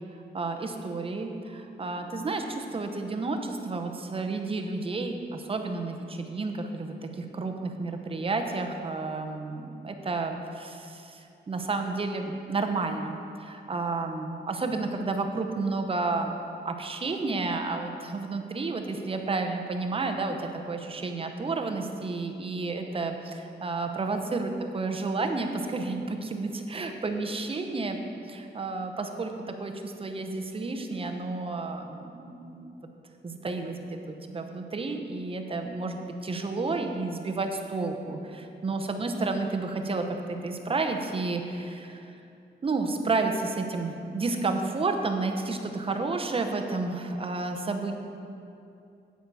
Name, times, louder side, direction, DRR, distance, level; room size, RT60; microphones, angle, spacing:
voice 1, 0.3-16.4 16.6-28.0 28.3-29.3 29.6-32.9 33.2-42.1 42.6-47.9, right 3 dB, 30° right, 5 dB, 0.7 m, -31 dB
8.7 x 8.2 x 4.7 m, 2.6 s
wide cardioid pair, 140°, 19 cm